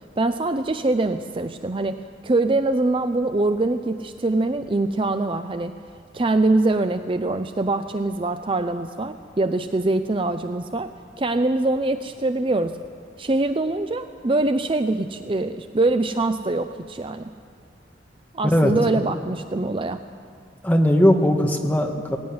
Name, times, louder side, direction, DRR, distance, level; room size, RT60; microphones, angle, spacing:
voice 1, 0.2-5.8 6.1-10.9 11.2-12.8 13.2-17.2 18.3-20.0, right 2 dB, 30° right, 9 dB, 0.5 m, -23 dB
voice 2, 20.6-22.2, equal, 10° left, 2 dB, 1.7 m, -18 dB
19.0 x 16.5 x 9.6 m, 2.2 s
head